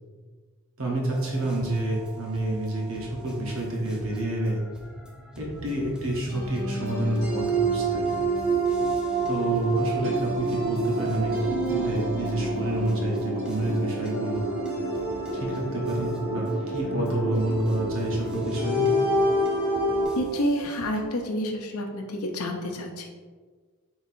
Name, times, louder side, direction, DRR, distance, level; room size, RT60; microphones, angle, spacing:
voice 1, 0.8-4.6 5.4-8.1 9.3-14.5 15.3-18.9, right 1 dB, 60° right, -2 dB, 0.9 m, -28 dB
sound 1, 1.1-21.0, right 1 dB, 5° right, 0.3 m, -45 dB
sound 2, 6.3-20.1, right 2 dB, 45° right, 1.5 m, -27 dB
voice 2, 20.2-23.1, equal, 75° left, 3 dB, 0.6 m, -29 dB
4.2 x 3.8 x 2.6 m, 1.5 s
head